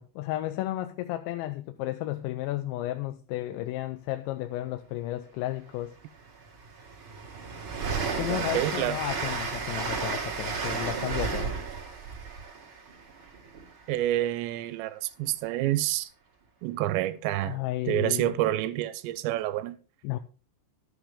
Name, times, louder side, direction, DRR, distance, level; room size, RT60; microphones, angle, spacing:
voice 1, 0.0-6.0 8.0-11.5 17.4-18.4 20.0-20.2, left 15 dB, 85° left, 2.9 m, -33 dB
Train, 5.7-5.8 6.2-13.9, right 5 dB, 45° right, 1.8 m, -33 dB
voice 2, 8.2-9.0 13.9-16.1 16.6-17.6 17.9-19.8, right 14 dB, 80° right, 2.9 m, -28 dB
12.0 x 8.7 x 3.5 m
omnidirectional pair, 5.2 m